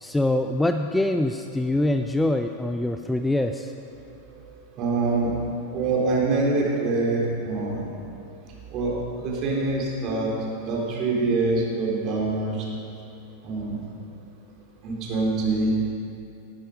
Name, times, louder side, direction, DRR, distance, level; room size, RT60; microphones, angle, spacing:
voice 1, 0.0-3.7, left 1 dB, 5° left, 7 dB, 0.5 m, -24 dB
voice 2, 4.8-5.3 5.7-7.9 8.7-8.9 9.2-10.3 10.7-12.6 13.4-13.8 14.8-15.8, right 3 dB, 35° right, -3 dB, 4.0 m, -24 dB
19.0 x 11.5 x 5.2 m, 2.8 s
figure-of-eight pair, 90°, 0 cm